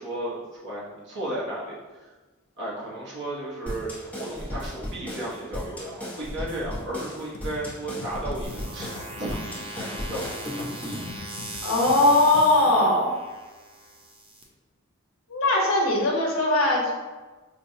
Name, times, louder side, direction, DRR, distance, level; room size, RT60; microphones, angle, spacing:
voice 1, 0.0-2.1 2.6-10.7 11.0-11.2 12.5-12.9, right 1 dB, 60° right, -6 dB, 1.1 m, -34 dB
sound 1, 3.7-11.2, left 1 dB, 5° left, 0.9 m, -36 dB
sound 2, 7.3-12.5, left 3 dB, 65° left, 0.4 m, -43 dB
sound 3, 8.4-14.4, right 2 dB, 25° right, 0.5 m, -40 dB
voice 2, 11.6-13.1 15.3-16.9, left 2 dB, 90° left, -1 dB, 0.9 m, -20 dB
5.2 x 2.3 x 2.6 m, 1.3 s
head